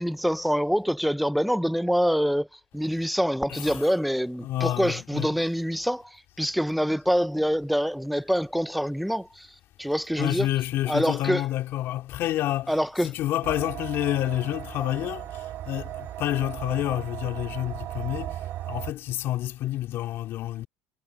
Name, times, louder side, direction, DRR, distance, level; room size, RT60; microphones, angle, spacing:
voice 1, 0.0-2.5 2.7-9.5 9.8-10.5 10.9-11.4 12.7-13.1, equal, ahead, 0.6 m, -25 dB
voice 2, 3.5-3.9 4.4-5.3 10.2-12.8 13.0-20.7, left 14 dB, 45° left, 3.5 m, -29 dB
sound 1, 13.4-18.9, right 13 dB, 45° right, 2.1 m, -36 dB
cardioid pair, 155°, 6 cm